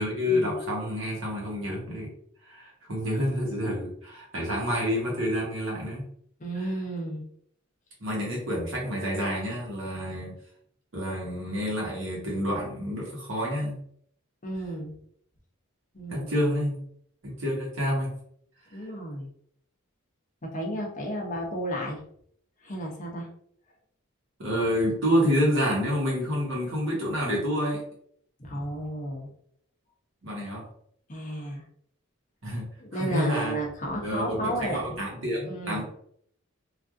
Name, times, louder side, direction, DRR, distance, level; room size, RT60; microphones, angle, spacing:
voice 1, 0.0-2.1 2.4-6.0 8.0-10.3 10.9-13.8 16.1-16.8 17.2-18.1 24.4-27.8 30.2-30.6 32.4-32.6 32.9-33.6 34.0-35.8, equal, 70° right, -3 dB, 1.2 m, -28 dB
voice 2, 6.4-7.3 14.4-15.0 15.9-16.3 18.7-19.3 20.4-22.0 22.6-23.3 28.4-29.3 31.1-31.6 32.8-35.0 35.5-35.8, right 1 dB, 40° left, -1 dB, 0.7 m, -33 dB
3.2 x 2.5 x 2.5 m, 0.67 s
head